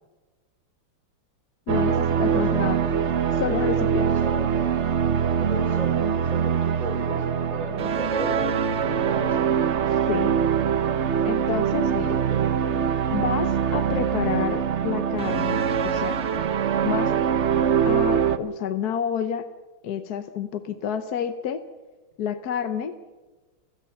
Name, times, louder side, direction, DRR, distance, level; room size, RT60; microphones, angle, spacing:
voice 1, 1.7-2.8 3.3-4.1 10.1-10.3 11.2-12.2 13.1-16.2 16.8-17.2 17.8-19.4 19.8-21.6 22.2-22.9, left 8 dB, 60° left, 10 dB, 1.3 m, -29 dB
sound 1, 1.7-18.4, right 7 dB, 55° right, 0.8 m, -23 dB
voice 2, 2.3-2.8 3.8-4.6 5.4-9.6 12.0-12.4, equal, 20° right, 5 dB, 3.5 m, -35 dB
sound 2, 13.5-14.5 15.2-15.6 16.2-16.6, equal, 80° left, 9.1 m, -51 dB
30.0 x 16.5 x 5.9 m, 1.2 s
omnidirectional pair, 2.2 m